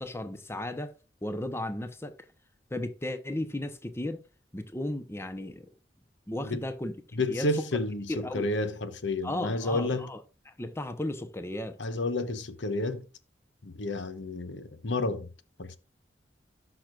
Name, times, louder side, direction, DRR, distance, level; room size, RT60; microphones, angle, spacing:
voice 1, 0.0-2.2 2.7-4.2 4.5-5.7 6.3-7.0 7.3-7.5 8.1-8.5 9.2-10.2 10.5-11.8, left 1 dB, 15° left, 0.8 m, -35 dB
voice 2, 7.1-10.1 11.8-13.0 13.6-15.3 15.6-15.8, left 2 dB, 85° left, 1.1 m, -31 dB
17.0 x 6.0 x 2.4 m
head